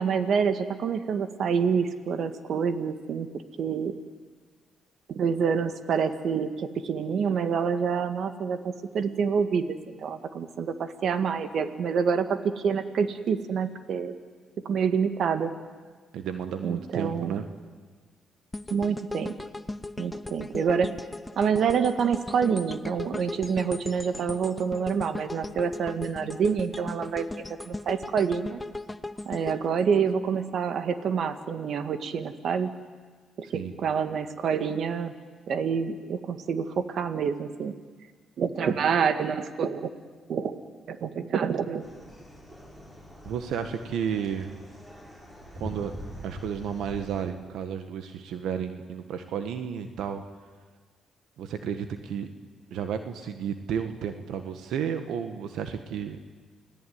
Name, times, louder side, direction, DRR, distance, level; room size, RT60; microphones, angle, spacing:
voice 1, 0.0-3.3 3.6-4.0 5.1-14.1 14.6-15.5 16.6-17.3 18.7-19.3 20.0-21.0 21.4-28.6 29.3-32.7 33.4-35.1 35.5-37.7 38.4-39.9 40.3-40.6 40.9-41.9, right 6 dB, 65° right, 9 dB, 1.8 m, -27 dB
voice 2, 16.1-17.5 33.5-33.7 43.3-44.5 45.6-45.9 46.2-50.2 51.4-52.3 52.7-56.2, right 8 dB, 80° right, 8 dB, 1.7 m, -32 dB
sound 1, 18.5-30.7 31.1-31.3, left 2 dB, 15° left, 0.9 m, -38 dB
sound 2, 41.8-47.2, equal, 15° right, 6.6 m, -43 dB
29.5 x 18.0 x 9.6 m, 1.5 s
cardioid pair, 90°, 0 cm